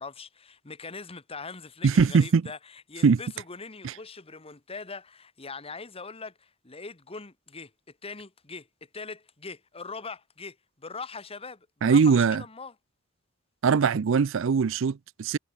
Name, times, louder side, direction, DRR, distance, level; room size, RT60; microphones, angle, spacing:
voice 1, 0.0-12.7, left 4 dB, 30° left, 1.4 m, -42 dB
voice 2, 1.8-2.4 3.0-3.2 3.8-3.9 11.8-12.4 13.6-15.4, right 5 dB, 65° right, 0.4 m, -21 dB
head